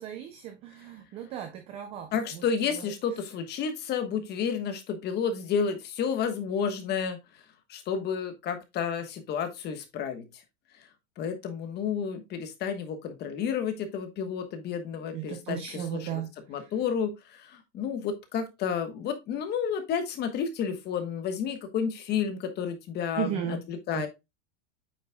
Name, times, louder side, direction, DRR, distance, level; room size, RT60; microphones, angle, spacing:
voice 1, 0.0-2.4 2.7-2.9 15.1-16.7 23.2-23.6 23.9-24.1, right 10 dB, 20° right, 0.3 m, -36 dB
voice 2, 2.1-7.4 7.7-10.4 11.2-16.2 16.5-24.1, left 7 dB, 25° left, 1.2 m, -31 dB
8.7 x 5.6 x 2.2 m
supercardioid pair, 165°, 37 cm